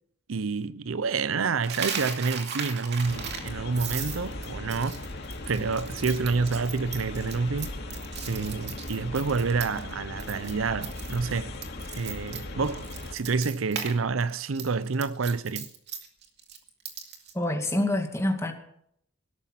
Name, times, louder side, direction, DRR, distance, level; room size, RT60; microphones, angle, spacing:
voice 1, 0.3-5.1 5.5-7.7 8.3-11.5 11.9-15.7, right 4 dB, 85° right, 0.6 m, -28 dB
Coin (dropping), 1.6-9.9 10.2-10.5 10.8-13.9 14.2-17.3, right 7 dB, 60° right, 2.4 m, -37 dB
sound 1, 3.0-13.2, left 1 dB, 55° left, 2.4 m, -38 dB
voice 2, 17.3-18.5, left 1 dB, 15° left, 2.2 m, -26 dB
17.5 x 13.0 x 5.9 m
head